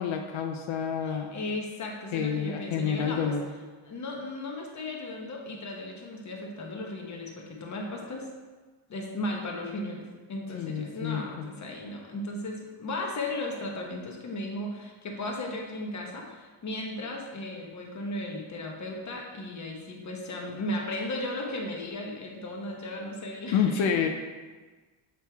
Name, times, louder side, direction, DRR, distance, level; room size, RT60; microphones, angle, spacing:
voice 1, 0.0-1.3 2.1-3.4 10.5-11.5 23.5-24.1, left 7 dB, 75° left, 4 dB, 0.7 m, -28 dB
voice 2, 1.0-3.4 3.9-8.3 8.9-24.1, left 1 dB, 35° left, 0 dB, 1.0 m, -36 dB
7.6 x 4.7 x 3.4 m, 1.3 s
cardioid pair, 160°, 48 cm